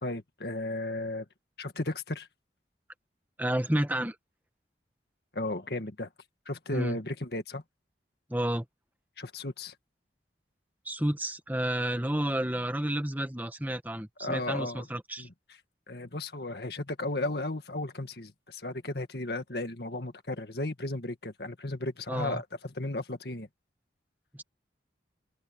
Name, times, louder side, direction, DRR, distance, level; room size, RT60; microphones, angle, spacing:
voice 1, 0.0-1.3 1.6-2.3 5.3-6.1 6.5-7.6 9.2-9.7 14.2-14.9 15.2-15.3 15.9-23.5, left 2 dB, 60° left, 2.0 m, -34 dB
voice 2, 3.4-4.2 6.7-7.0 8.3-8.6 10.8-15.3 22.1-22.4 24.3-24.4, right 1 dB, 10° right, 1.5 m, -30 dB
open air
head